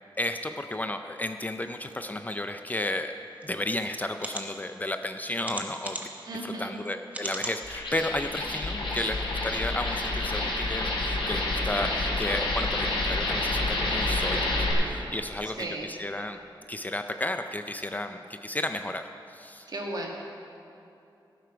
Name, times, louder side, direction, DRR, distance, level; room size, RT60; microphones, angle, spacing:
voice 1, 0.2-3.2 3.4-6.1 6.4-16.4 16.7-19.7, left 1 dB, 20° left, 7 dB, 0.4 m, -33 dB
sound 1, 3.4-3.5 4.1-4.4 5.4-6.2 7.1-7.6 8.1-8.2 8.6-8.7, right 1 dB, 20° right, 1.1 m, -36 dB
voice 2, 6.3-6.8 15.6-15.9 19.7-20.1, right 2 dB, 50° right, -1 dB, 1.8 m, -35 dB
sound 2, 7.6-14.7, left 2 dB, 75° left, 3.5 m, -28 dB
17.0 x 7.9 x 5.0 m, 2.8 s
wide cardioid pair, 160°, 9 cm